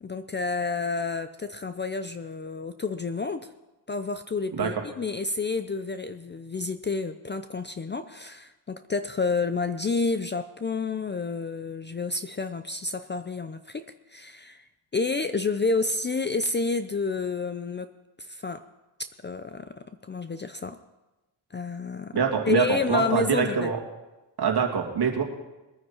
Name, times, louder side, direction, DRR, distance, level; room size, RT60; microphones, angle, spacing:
voice 1, 0.0-3.5 3.9-13.8 14.1-14.7 14.9-17.9 18.2-18.6 19.2-20.8 21.5-22.2 22.5-23.7, left 4 dB, 25° left, 10 dB, 0.5 m, -29 dB
voice 2, 4.5-4.8 22.1-23.8 24.4-25.2, right 6 dB, 55° right, 1 dB, 2.5 m, -25 dB
21.5 x 9.5 x 4.5 m, 1.1 s
cardioid pair, 125°, 47 cm